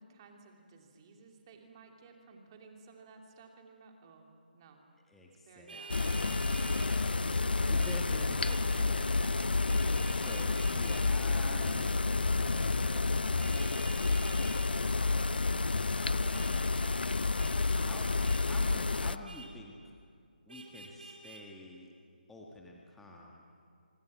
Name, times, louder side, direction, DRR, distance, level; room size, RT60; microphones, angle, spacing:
voice 1, 0.0-4.3 4.5-4.8 5.5-6.0 8.5-9.1 16.5-17.0, right 4 dB, 30° right, 3 dB, 3.1 m, -55 dB
voice 2, 5.1-5.8 6.2-9.4 10.2-14.1 16.2-16.8 17.7-18.1 18.4-20.0 20.5-21.9 22.3-23.4, left 1 dB, 5° left, -1 dB, 1.9 m, -49 dB
Vehicle horn car horn honking, 5.7-6.9 7.8-8.0 8.4-8.7 9.7-11.1 13.4-14.7 16.3-16.5 17.4-17.5 18.2-18.4 19.2-19.5 20.5-21.4, right 3 dB, 65° right, 4.6 m, -48 dB
sound 1, 5.9-19.2, left 3 dB, 70° left, 0.8 m, -30 dB
26.0 x 24.5 x 7.7 m, 2.2 s
figure-of-eight pair, 150°, 5 cm